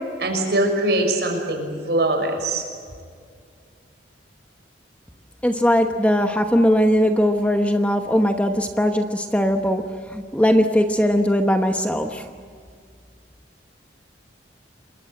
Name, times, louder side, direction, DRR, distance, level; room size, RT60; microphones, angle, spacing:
voice 1, 0.2-2.6, right 1 dB, 65° right, 3 dB, 6.0 m, -22 dB
voice 2, 5.4-9.8 10.1-12.2, equal, 5° left, 5 dB, 1.1 m, -19 dB
28.0 x 22.5 x 7.8 m, 2.1 s
head